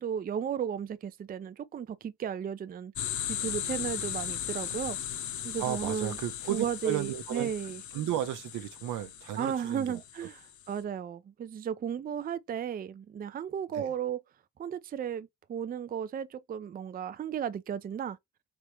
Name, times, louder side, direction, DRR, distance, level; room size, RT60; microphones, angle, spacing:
voice 1, 0.0-2.9 3.3-5.0 5.4-6.2 6.5-7.8 9.4-10.4 10.7-14.2 14.6-18.2, right 8 dB, 30° right, 0.4 m, -34 dB
sound 1, 3.0-10.7, left 10 dB, 75° left, 0.9 m, -37 dB
voice 2, 5.6-7.5 7.9-10.0 13.7-13.9, right 12 dB, 85° right, 0.7 m, -34 dB
3.6 x 3.3 x 3.0 m
cardioid pair, 90°, 30 cm